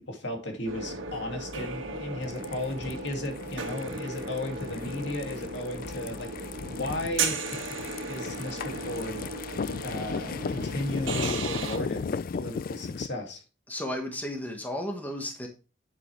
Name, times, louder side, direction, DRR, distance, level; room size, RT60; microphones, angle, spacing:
voice 1, 0.0-9.2 9.8-13.4, left 1 dB, 60° left, 2.3 m, -35 dB
sound 1, 0.6-11.8, right 3 dB, 85° right, 1.8 m, -36 dB
sound 2, 2.2-13.1, left 5 dB, 45° left, 0.3 m, -36 dB
voice 2, 13.7-15.5, left 1 dB, 10° left, 1.4 m, -33 dB
9.0 x 8.0 x 3.3 m
head